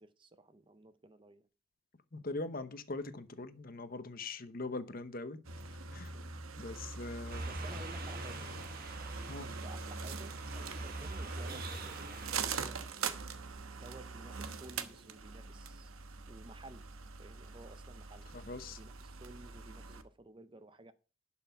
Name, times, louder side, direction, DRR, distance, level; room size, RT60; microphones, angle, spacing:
voice 1, 0.0-1.5 6.1-6.3 7.4-8.6 9.4-12.8 13.8-15.9 16.3-16.9 17.2-18.3 18.8-20.9, right 2 dB, 25° right, 0.5 m, -54 dB
voice 2, 2.1-5.4 5.9-6.1 6.6-7.5 9.3-9.5 18.3-18.8, left 3 dB, 45° left, 0.9 m, -41 dB
sound 1, 5.4-20.0, right 4 dB, 85° right, 1.1 m, -43 dB
sound 2, 7.3-12.5, right 3 dB, 45° right, 1.5 m, -46 dB
11.0 x 5.8 x 5.7 m
head